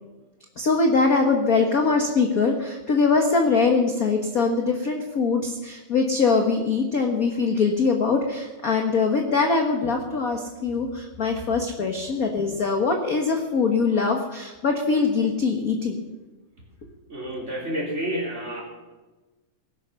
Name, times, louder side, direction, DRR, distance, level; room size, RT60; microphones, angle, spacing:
voice 1, 0.6-16.0, left 4 dB, 50° left, 3 dB, 1.0 m, -22 dB
voice 2, 17.1-18.6, right 1 dB, 20° right, -2 dB, 3.6 m, -29 dB
19.5 x 11.5 x 5.7 m, 1.2 s
omnidirectional pair, 3.5 m